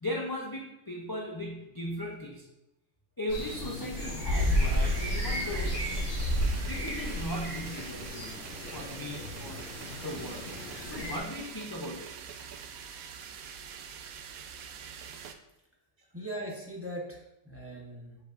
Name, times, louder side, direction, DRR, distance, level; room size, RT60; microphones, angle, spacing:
voice 1, 0.0-2.5 3.2-5.8 6.7-8.5 8.7-10.5 10.8-12.1, left 1 dB, 30° left, -2 dB, 0.4 m, -38 dB
sound 1, 3.3-11.2, equal, 75° left, 2.8 m, -32 dB
sound 2, 4.3-15.3, right 7 dB, 90° right, 1.0 m, -44 dB
voice 2, 16.1-18.2, right 1 dB, 10° right, -2 dB, 0.8 m, -40 dB
7.5 x 5.2 x 2.6 m, 0.90 s
omnidirectional pair, 1.5 m